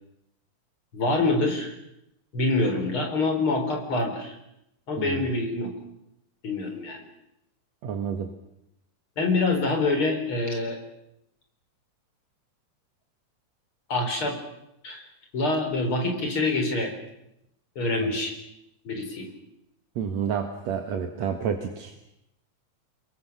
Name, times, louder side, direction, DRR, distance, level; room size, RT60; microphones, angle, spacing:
voice 1, 0.9-1.8 2.3-4.3 4.9-5.7 6.4-7.0 9.2-10.8 13.9-14.4 14.8-15.0 15.3-16.9 17.8-18.3 18.9-19.3, left 2 dB, 45° left, 4 dB, 5.3 m, -25 dB
voice 2, 7.8-8.3 20.0-21.9, right 7 dB, 65° right, 5 dB, 2.8 m, -29 dB
29.0 x 23.0 x 7.0 m, 0.84 s
omnidirectional pair, 3.4 m